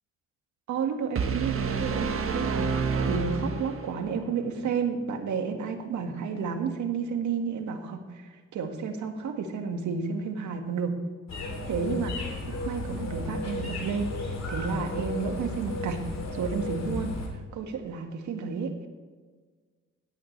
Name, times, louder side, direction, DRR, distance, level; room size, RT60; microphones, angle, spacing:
voice 1, 0.7-11.0 11.7-14.2 14.5-16.0 16.3-17.2 17.5-18.7, right 5 dB, 75° right, 4 dB, 1.9 m, -31 dB
sound 1, 1.2-4.1, right 5 dB, 45° right, 1.6 m, -28 dB
sound 2, 11.3-17.3, left 2 dB, 60° left, 3.2 m, -34 dB
16.5 x 12.0 x 3.3 m, 1.5 s
cardioid pair, 90°, 30 cm